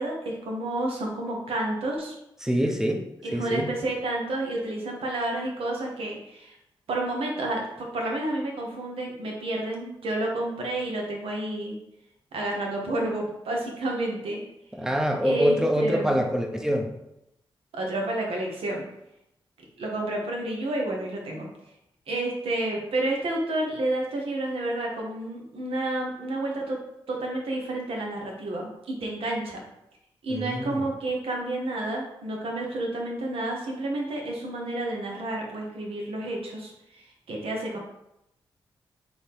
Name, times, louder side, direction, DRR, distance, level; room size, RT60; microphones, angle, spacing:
voice 1, 0.0-2.1 3.2-6.5 6.9-11.8 12.3-14.4 15.2-16.2 17.7-18.8 19.8-21.5 22.1-26.8 27.1-29.6 30.2-37.8, right 1 dB, 80° right, -1 dB, 1.0 m, -30 dB
voice 2, 2.4-3.0 3.3-3.7 14.7-16.9 30.3-30.8, equal, 5° right, 3 dB, 0.7 m, -25 dB
4.0 x 3.0 x 3.5 m, 0.83 s
supercardioid pair, 50°, 10 cm